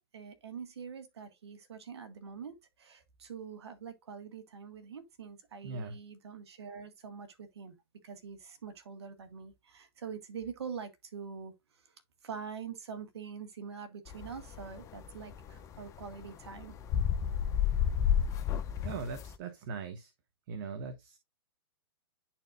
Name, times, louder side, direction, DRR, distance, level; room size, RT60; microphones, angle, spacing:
voice 1, 0.1-7.8 8.0-11.9 12.2-16.8, right 6 dB, 75° right, 1.8 m, -45 dB
voice 2, 5.6-5.9 18.8-20.1 20.5-21.2, right 5 dB, 50° right, 1.1 m, -40 dB
sound 1, 14.1-19.4, left 9 dB, 20° left, 0.6 m, -31 dB
10.5 x 4.4 x 2.5 m
hypercardioid pair, 130°, 14 cm